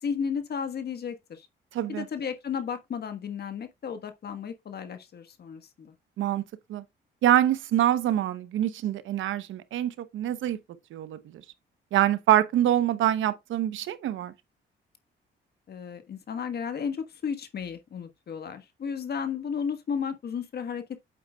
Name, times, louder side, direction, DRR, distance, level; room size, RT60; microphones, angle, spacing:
voice 1, 0.0-1.5 1.9-5.9 15.7-21.0, left 6 dB, 55° left, 1.4 m, -33 dB
voice 2, 1.7-2.0 6.2-6.4 6.7-6.8 7.2-10.6 10.9-11.4 11.9-14.3, right 12 dB, 80° right, 0.9 m, -25 dB
8.4 x 8.0 x 2.3 m
cardioid pair, 90°, 20 cm